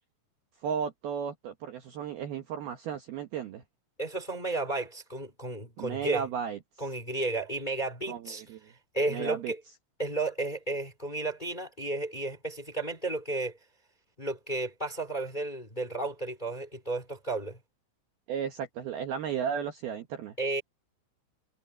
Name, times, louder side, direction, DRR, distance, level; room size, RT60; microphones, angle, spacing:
voice 1, 0.6-3.6 5.8-6.6 8.1-8.6 9.1-9.5 18.3-20.3, right 7 dB, 65° right, 2.7 m, -34 dB
voice 2, 4.0-6.3 6.8-8.4 8.9-9.6 10.0-13.6 14.2-17.6 20.4-20.6, right 2 dB, 10° left, 2.8 m, -33 dB
omnidirectional pair, 5.9 m